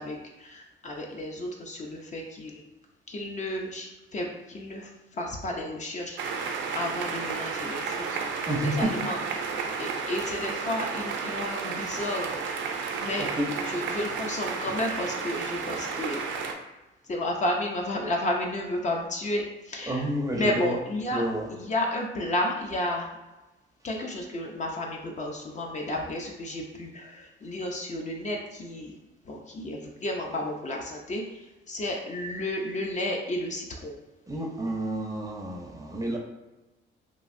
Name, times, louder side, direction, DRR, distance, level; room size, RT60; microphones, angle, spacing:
voice 1, 0.0-2.6 3.1-6.2 6.7-8.2 8.6-9.5 9.8-12.3 13.0-13.3 13.6-16.2 17.1-21.2 21.5-23.1 23.8-28.9 29.3-31.2 31.7-33.9, left 1 dB, 35° left, 0 dB, 0.5 m, -32 dB
sound 1, 6.2-16.5, right 5 dB, 70° right, 0.5 m, -32 dB
voice 2, 8.5-8.9 13.2-13.5 19.9-20.8 21.1-21.5 34.3-36.2, right 1 dB, 15° right, 0 dB, 0.5 m, -29 dB
3.0 x 2.5 x 2.5 m, 1.1 s
cardioid pair, 90°, 20 cm